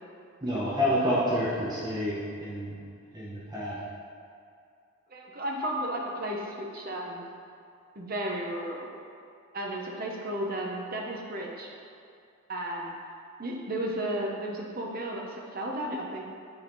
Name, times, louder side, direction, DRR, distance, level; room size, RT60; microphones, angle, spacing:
voice 1, 0.4-2.7 3.1-3.8, equal, 20° right, -8 dB, 1.0 m, -28 dB
voice 2, 5.1-7.2 7.9-8.9 9.5-11.7 12.5-12.9 13.4-16.2, right 1 dB, 40° right, -1 dB, 0.9 m, -33 dB
9.0 x 4.2 x 4.0 m, 2.4 s
head